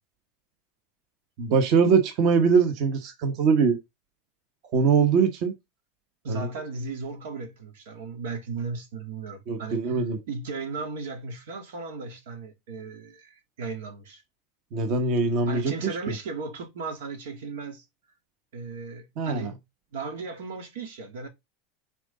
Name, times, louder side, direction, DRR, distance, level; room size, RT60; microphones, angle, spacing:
voice 1, 1.4-3.8 4.7-5.5 6.3-6.5 9.5-10.2 14.7-15.7 16.1-16.2 19.2-19.5, right 5 dB, 45° right, 1.1 m, -22 dB
voice 2, 6.2-14.2 15.5-17.8 18.5-19.6 19.9-21.3, right 4 dB, 85° right, 2.0 m, -36 dB
6.1 x 3.8 x 5.0 m
supercardioid pair, 160°, 0 cm